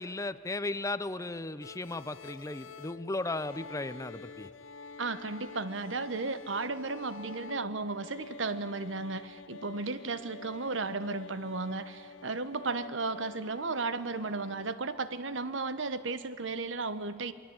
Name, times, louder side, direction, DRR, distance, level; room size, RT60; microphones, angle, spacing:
voice 1, 0.0-4.5, left 2 dB, 15° left, 14 dB, 0.7 m, -36 dB
sound 1, 1.6-14.7, left 4 dB, 85° left, 0.6 m, -48 dB
voice 2, 5.0-17.3, right 3 dB, 75° right, 13 dB, 1.2 m, -34 dB
27.5 x 22.5 x 8.8 m, 2.6 s
head